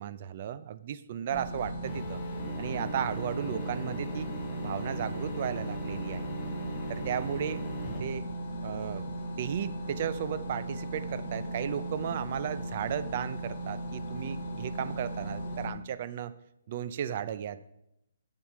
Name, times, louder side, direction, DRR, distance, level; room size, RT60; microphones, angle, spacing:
voice 1, 0.0-2.2 2.6-4.3 4.6-6.2 6.9-7.6 8.0-8.3 8.6-9.1 9.4-16.3 16.7-17.6, right 9 dB, 35° right, 14 dB, 0.6 m, -35 dB
sound 1, 1.3-15.7, right 1 dB, 40° left, 2.2 m, -37 dB
sound 2, 1.8-8.0, equal, 15° left, 2.2 m, -40 dB
11.0 x 8.5 x 4.7 m, 0.81 s
hypercardioid pair, 165°, 0 cm